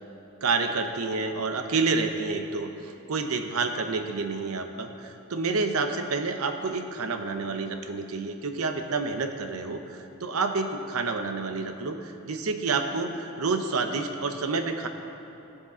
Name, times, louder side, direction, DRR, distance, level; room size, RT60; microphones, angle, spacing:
voice 1, 0.4-14.9, right 4 dB, 80° right, 6 dB, 0.7 m, -29 dB
15.5 x 6.6 x 3.7 m, 2.9 s
head